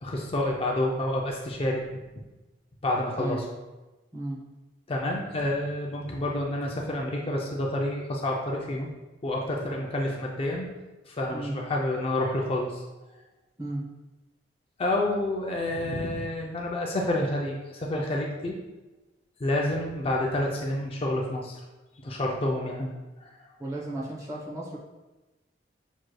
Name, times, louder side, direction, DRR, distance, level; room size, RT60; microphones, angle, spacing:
voice 1, 0.0-2.0 2.8-3.4 4.9-8.9 9.2-10.7 11.1-12.8 14.8-18.6 19.4-21.6 22.0-22.9 23.2-23.3, left 1 dB, 30° left, -1 dB, 0.4 m, -29 dB
voice 2, 23.6-24.8, right 1 dB, 20° right, -4 dB, 0.8 m, -34 dB
6.1 x 3.1 x 2.2 m, 1.1 s
head